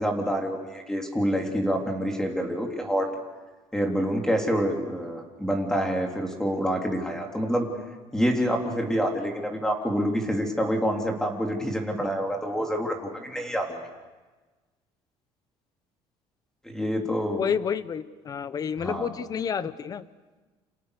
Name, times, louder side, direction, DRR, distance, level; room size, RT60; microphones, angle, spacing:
voice 1, 0.0-3.1 3.7-7.7 8.1-13.8 16.6-17.4 18.8-19.1, equal, 5° left, 3 dB, 3.7 m, -27 dB
voice 2, 17.4-20.0, left 7 dB, 35° left, 15 dB, 1.1 m, -29 dB
29.5 x 27.5 x 6.8 m, 1.3 s
cardioid pair, 135°, 11 cm